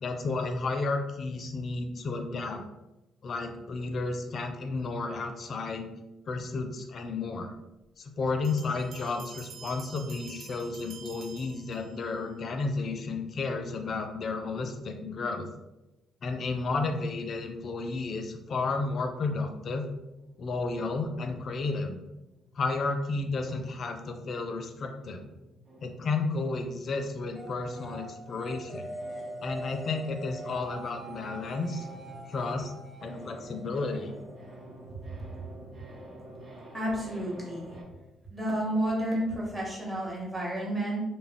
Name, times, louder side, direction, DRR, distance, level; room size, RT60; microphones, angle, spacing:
voice 1, 0.0-2.6 3.2-5.9 6.3-7.5 8.0-15.5 16.2-19.9 20.4-22.0 22.5-25.2 25.8-28.9 29.4-31.9 32.3-32.7 33.0-34.1, left 3 dB, 55° left, 5 dB, 0.4 m, -32 dB
Bell, 8.4-12.2, right 6 dB, 75° right, 0.3 m, -48 dB
sound 1, 20.1-22.7 22.9-37.8, right 1 dB, 55° right, 0.7 m, -50 dB
sound 2, 27.4-34.8, right 1 dB, 10° left, 0.7 m, -44 dB
voice 2, 36.7-37.7 38.3-41.0, right 1 dB, 20° right, -4 dB, 1.1 m, -31 dB
2.4 x 2.0 x 3.5 m, 0.99 s
cardioid pair, 90°, 0 cm